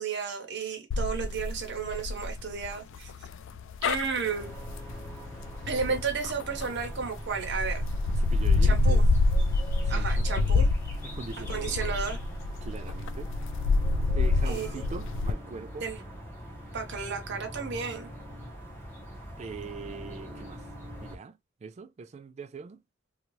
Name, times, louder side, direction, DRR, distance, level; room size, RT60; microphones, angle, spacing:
voice 1, 0.0-3.1 3.8-4.5 5.7-7.8 8.6-9.0 9.9-10.7 11.5-12.2 14.5-14.9 15.8-16.0 16.7-18.1, right 5 dB, 60° right, 0.8 m, -33 dB
sound 1, 0.9-6.9 7.4-15.3, left 3 dB, 65° left, 0.3 m, -27 dB
sound 2, 4.2-21.2, equal, 10° left, 0.9 m, -41 dB
voice 2, 8.2-9.0 9.8-10.6 11.0-11.8 12.6-13.3 14.1-15.9 19.4-20.6 21.0-22.8, right 4 dB, 35° right, 0.3 m, -42 dB
2.6 x 2.3 x 3.0 m
head